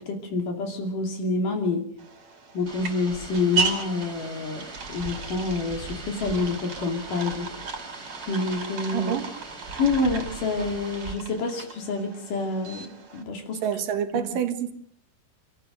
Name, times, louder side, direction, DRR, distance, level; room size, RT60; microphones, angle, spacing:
voice 1, 0.0-1.9 2.5-7.5 8.3-9.1 9.8-13.7 14.1-14.4, left 3 dB, 65° left, 4.2 m, -28 dB
sound 1, 2.0-13.2, right 5 dB, 45° right, 3.6 m, -35 dB
sound 2, 2.7-11.1, right 3 dB, 25° right, 3.4 m, -40 dB
voice 2, 8.9-9.3 13.6-14.7, right 9 dB, 75° right, 3.1 m, -27 dB
29.5 x 14.0 x 6.6 m
omnidirectional pair, 4.0 m